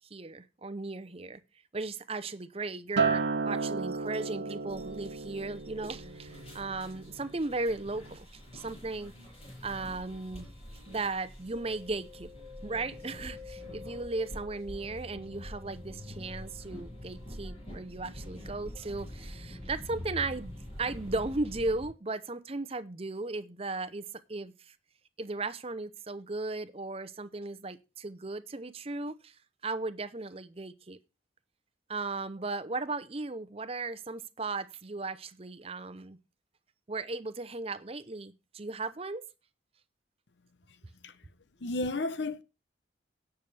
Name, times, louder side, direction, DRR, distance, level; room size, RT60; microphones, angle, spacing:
voice 1, 0.1-1.4 1.7-8.3 8.5-9.1 9.6-10.5 10.9-12.3 12.6-24.7 25.2-29.3 29.6-31.0 31.9-36.2 36.9-39.3, right 3 dB, 30° right, 0.7 m, -36 dB
Acoustic guitar, 3.0-7.4 7.8-8.2, right 4 dB, 70° right, 0.7 m, -33 dB
sound 1, 4.7-21.9, left 1 dB, 30° left, 7.5 m, -46 dB
Mallet percussion, 11.5-21.1, left 6 dB, 15° left, 7.0 m, -54 dB
voice 2, 41.6-42.4, left 2 dB, 70° left, 0.7 m, -32 dB
17.5 x 6.8 x 3.4 m
head